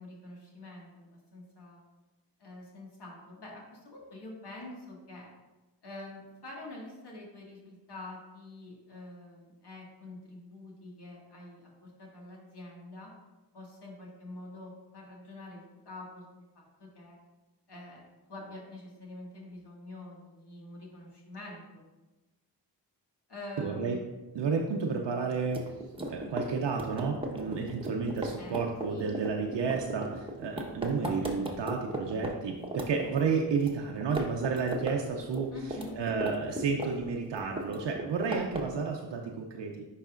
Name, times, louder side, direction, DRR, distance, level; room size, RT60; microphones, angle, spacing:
voice 1, 0.0-1.8 2.4-5.3 5.8-13.1 13.5-17.2 17.7-18.0 18.3-21.8 23.3-24.1 28.3-29.2 35.5-36.0, left 2 dB, 65° left, -3 dB, 2.0 m, -46 dB
voice 2, 23.6-24.0 24.3-25.6 26.1-35.5 36.0-39.9, right 5 dB, 75° right, 1 dB, 0.6 m, -31 dB
sound 1, 25.4-32.3 32.6-33.7 34.0-35.0 35.2-37.1 37.4-38.8, right 1 dB, 10° right, 1.1 m, -36 dB
10.5 x 4.1 x 2.5 m, 1.1 s
cardioid pair, 45°, 42 cm